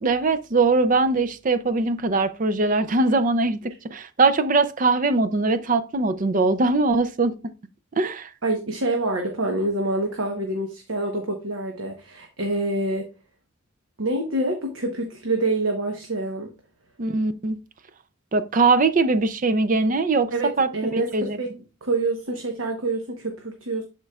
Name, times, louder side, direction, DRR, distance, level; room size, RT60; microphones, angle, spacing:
voice 1, 0.0-3.6 3.9-7.3 8.0-8.3 17.0-17.6 18.3-20.3 20.6-20.7 21.1-21.4, right 3 dB, 40° right, 0.5 m, -21 dB
voice 2, 8.4-13.1 14.0-16.5 20.3-23.8, right 2 dB, 75° right, 1.0 m, -26 dB
11.0 x 4.5 x 2.4 m
head